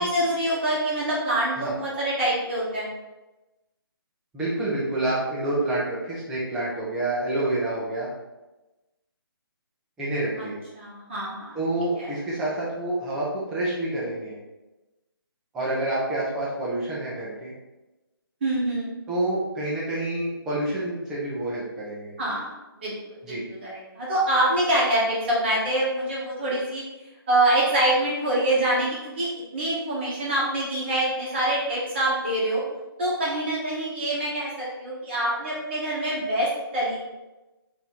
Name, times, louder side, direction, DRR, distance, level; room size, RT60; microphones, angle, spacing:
voice 1, 0.0-2.9 10.8-11.6 12.0-12.1 18.4-18.9 22.2-22.9 23.3-26.8 27.3-32.6 33.0-37.0, right 1 dB, 30° right, -6 dB, 0.8 m, -25 dB
voice 2, 4.3-8.1 10.0-10.6 11.5-14.4 15.5-17.5 19.1-22.1 23.2-23.5, right 2 dB, 5° right, -8 dB, 0.4 m, -28 dB
3.5 x 2.6 x 4.3 m, 1.1 s
hypercardioid pair, 170°, 13 cm